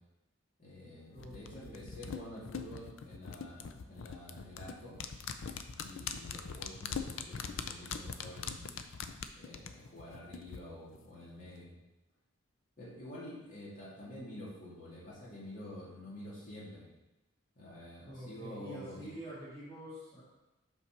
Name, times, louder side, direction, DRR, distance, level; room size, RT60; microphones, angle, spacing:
voice 1, 0.6-5.0 5.8-8.8 9.1-11.7 12.8-16.9 17.5-19.1, left 1 dB, 40° left, -8 dB, 2.3 m, -48 dB
voice 2, 1.1-1.9 18.0-20.2, equal, 20° left, -14 dB, 2.2 m, -47 dB
sound 1, 1.2-10.6 10.9-11.0, left 6 dB, 65° left, 0.4 m, -42 dB
5.6 x 4.5 x 5.8 m, 1.0 s
head